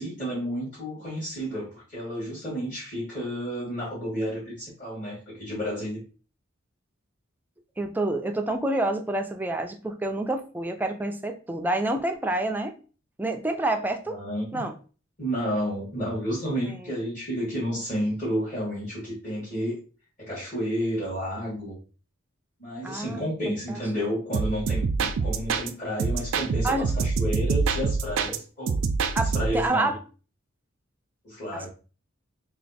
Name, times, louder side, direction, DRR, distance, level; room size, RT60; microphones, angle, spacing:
voice 1, 0.0-6.0 14.1-14.6 15.2-19.8 20.2-21.8 22.6-28.8 29.2-29.9 31.2-31.7, equal, 40° left, -9 dB, 1.8 m, -31 dB
voice 2, 7.8-12.8 13.2-14.2 14.5-14.7 16.7-16.9 22.8-23.8 26.6-26.9 28.3-28.4 29.1-30.0 31.5-31.7, right 2 dB, 10° right, 4 dB, 0.4 m, -28 dB
sound 1, 24.3-25.7 26.0-28.4 28.7-29.7, right 4 dB, 80° right, 0.4 m, -26 dB
3.3 x 2.4 x 4.1 m, 0.37 s
head